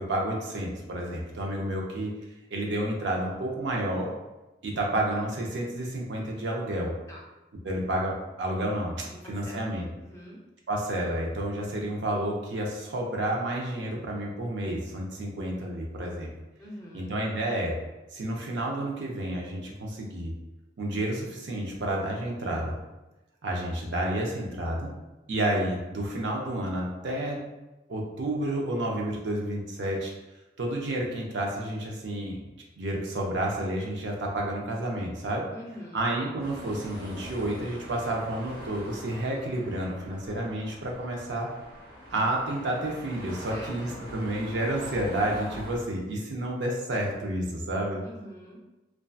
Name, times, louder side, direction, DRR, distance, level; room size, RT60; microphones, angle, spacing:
voice 1, 0.0-2.1 2.5-4.1 4.6-6.9 7.6-9.9 10.7-16.3 16.9-17.8 18.1-20.3 20.8-22.8 23.4-24.9 25.3-27.4 27.9-30.1 30.6-32.4 32.8-35.4 35.9-41.5 42.1-48.0, right 1 dB, 85° right, -1 dB, 0.5 m, -30 dB
voice 2, 9.0-9.7 10.0-10.4 16.6-17.2 35.5-36.1 43.5-44.1 48.0-48.6, left 1 dB, 15° left, -4 dB, 0.4 m, -45 dB
sound 1, 36.4-45.8, equal, 55° right, 0.8 m, -43 dB
2.6 x 2.2 x 2.3 m, 1.0 s
head